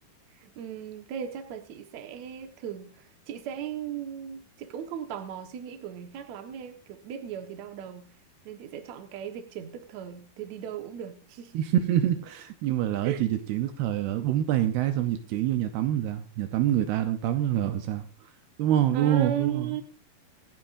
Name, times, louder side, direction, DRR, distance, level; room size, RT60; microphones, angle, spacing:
voice 1, 0.4-8.1 8.5-11.6 13.0-13.2 18.9-19.8, right 9 dB, 60° right, 6 dB, 2.1 m, -37 dB
voice 2, 11.5-18.1 18.6-19.8, right 11 dB, 75° right, 8 dB, 2.7 m, -26 dB
26.5 x 8.8 x 2.6 m, 0.35 s
omnidirectional pair, 4.8 m